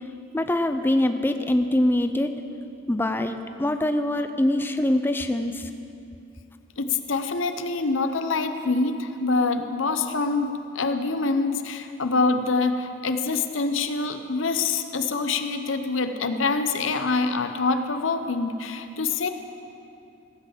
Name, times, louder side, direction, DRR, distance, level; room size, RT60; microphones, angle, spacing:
voice 1, 0.3-2.3 2.9-5.7, left 1 dB, 10° left, 7 dB, 0.4 m, -23 dB
voice 2, 6.8-19.3, left 3 dB, 90° left, 8 dB, 0.8 m, -25 dB
16.0 x 7.8 x 7.4 m, 2.7 s
head